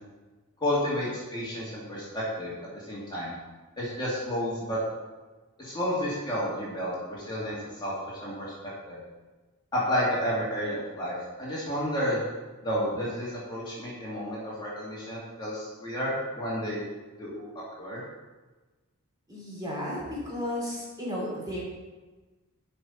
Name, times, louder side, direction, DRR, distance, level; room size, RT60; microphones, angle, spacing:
voice 1, 0.6-2.5 2.9-3.4 3.8-4.8 5.6-7.9 8.2-8.5 8.8-9.0 9.7-12.2 12.6-16.8 17.2-17.5 17.8-18.0, equal, 20° left, -7 dB, 2.3 m, -31 dB
voice 2, 19.3-21.6, left 1 dB, 20° right, -6 dB, 3.0 m, -33 dB
7.9 x 5.8 x 5.7 m, 1.2 s
head